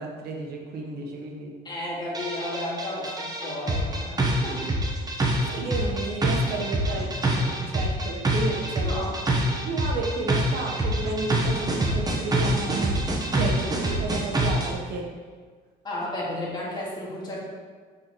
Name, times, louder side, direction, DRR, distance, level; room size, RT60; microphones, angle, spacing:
voice 1, 0.0-1.5 5.5-9.0 9.6-13.0 13.3-15.0, right 3 dB, 70° right, 1 dB, 1.1 m, -32 dB
voice 2, 1.6-4.7 6.9-7.4 8.8-9.2 15.8-17.4, left 1 dB, 25° left, -4 dB, 1.9 m, -33 dB
sound 1, 2.1-14.7, right 1 dB, 25° right, 1.1 m, -26 dB
6.8 x 6.4 x 3.1 m, 1.5 s
cardioid pair, 110°, 17 cm